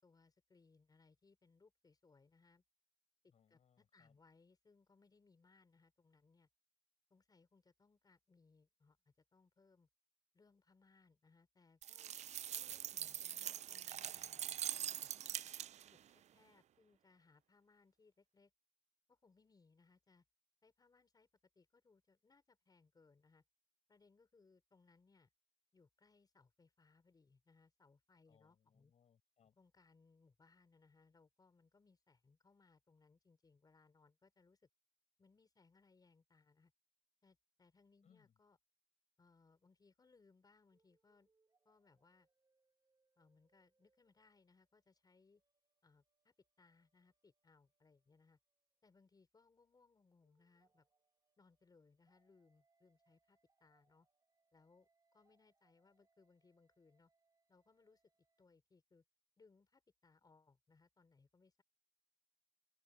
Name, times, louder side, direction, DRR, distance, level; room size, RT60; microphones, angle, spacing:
voice 1, 0.0-2.6 3.2-6.5 7.1-9.9 10.3-12.1 12.6-15.1 16.1-18.5 19.1-20.2 20.6-21.3 21.5-23.4 23.9-25.3 25.7-28.9 29.6-34.7 35.2-36.7 37.2-38.6 39.2-41.3 41.6-42.3 43.2-45.4 45.8-48.4 48.8-50.9 51.4-54.1 54.5-57.1 57.5-58.0 58.4-59.0 59.4-61.6, left 4 dB, 35° left, 4.9 m, -71 dB
voice 2, 3.3-4.2 28.3-29.6 38.0-38.3, left 7 dB, 80° left, 7.6 m, -73 dB
sound 1, 11.8-16.0, right 10 dB, 85° right, 0.4 m, -44 dB
sound 2, 40.7-49.1 50.2-58.4, right 4 dB, 35° right, 6.9 m, -84 dB
open air
wide cardioid pair, 125°, 11 cm